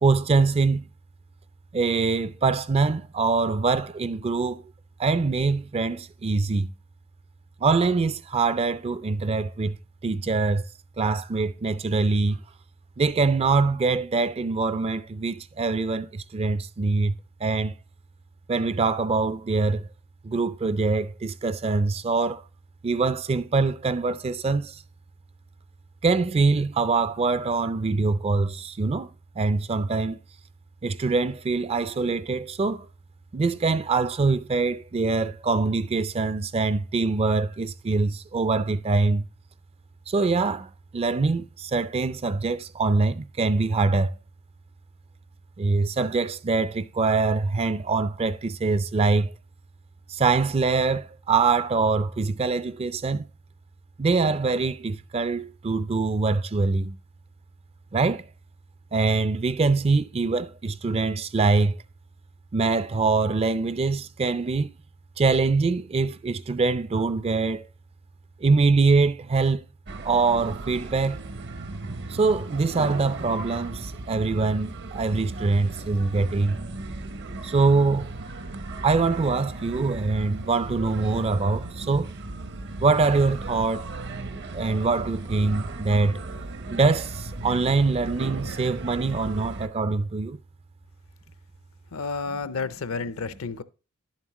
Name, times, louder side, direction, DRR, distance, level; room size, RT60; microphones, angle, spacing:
voice 1, 0.0-0.9 1.7-4.6 5.0-6.7 7.6-9.8 10.0-10.7 11.0-12.4 13.0-17.7 18.5-19.9 20.2-22.4 22.8-24.8 26.0-29.1 29.4-30.2 30.8-32.9 33.3-39.3 40.1-44.1 45.6-49.3 50.1-53.3 54.0-57.0 57.9-58.2 58.9-61.8 62.5-64.7 65.2-67.6 68.4-69.6 70.0-71.2 72.1-76.6 77.4-78.1 78.8-82.1 82.8-83.9 84.5-86.2 86.7-90.4, right 3 dB, 30° right, 0.4 m, -24 dB
sound 1, 69.9-89.7, right 2 dB, 55° right, 0.7 m, -36 dB
voice 2, 91.9-93.6, left 4 dB, 70° left, 0.6 m, -31 dB
11.0 x 7.3 x 3.0 m
head